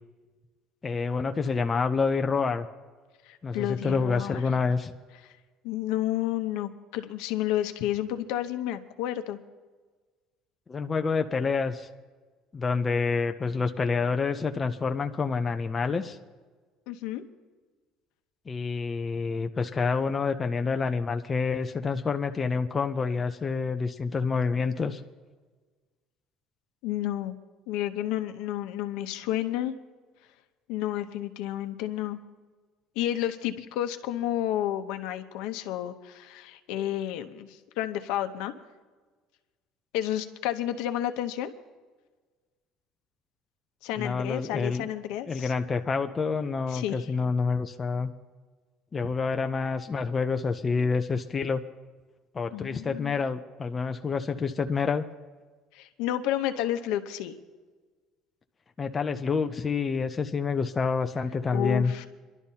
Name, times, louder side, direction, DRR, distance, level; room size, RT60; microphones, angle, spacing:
voice 1, 0.8-2.7 3.4-4.9 10.7-11.9 12.5-16.2 18.5-25.0 44.0-44.9 45.3-48.1 48.9-51.6 52.3-55.0 58.8-61.9, left 4 dB, 15° left, 6 dB, 0.4 m, -28 dB
voice 2, 3.2-4.4 5.6-9.4 16.9-17.2 26.8-27.4 27.7-29.7 30.7-32.2 33.0-38.5 39.9-41.5 43.8-45.5 46.7-47.0 52.5-53.2 55.7-57.3 61.5-62.1, left 12 dB, 75° left, 8 dB, 0.8 m, -31 dB
27.5 x 11.5 x 2.8 m, 1.4 s
cardioid pair, 180°, 0 cm